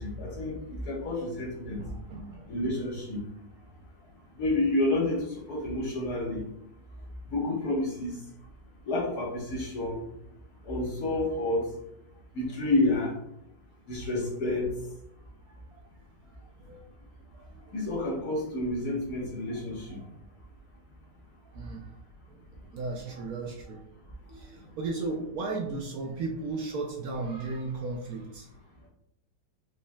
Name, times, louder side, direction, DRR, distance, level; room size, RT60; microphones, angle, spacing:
voice 1, 0.0-1.8 2.5-3.2 4.4-6.4 7.3-8.2 8.8-10.0 10.6-11.7 12.3-13.1 13.9-14.7 17.7-20.0, left 2 dB, 60° left, -4 dB, 1.8 m, -29 dB
voice 2, 1.8-2.6 15.8-15.9 16.7-16.8 17.2-17.8 19.9-20.0 21.5-21.9 22.3-22.4 22.7-23.8 24.2-28.9, right 3 dB, 70° right, 1 dB, 0.9 m, -36 dB
4.7 x 4.1 x 2.2 m, 0.80 s
omnidirectional pair, 1.9 m